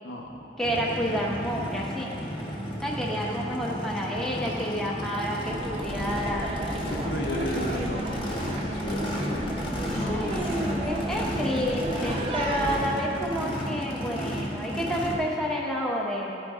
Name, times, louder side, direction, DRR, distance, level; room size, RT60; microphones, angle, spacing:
voice 1, 0.0-0.6 6.9-10.6, equal, 70° left, -1 dB, 1.0 m, -35 dB
Race car auto racing / Idling / Accelerating revving vroom, 0.6-15.1, equal, 30° left, 1.0 m, -33 dB
voice 2, 0.6-2.1 2.8-6.5 10.1-16.3, equal, ahead, -4 dB, 0.8 m, -30 dB
sound 1, 5.5-12.8, right 1 dB, 30° right, 0.7 m, -33 dB
14.5 x 5.1 x 3.5 m, 2.9 s
head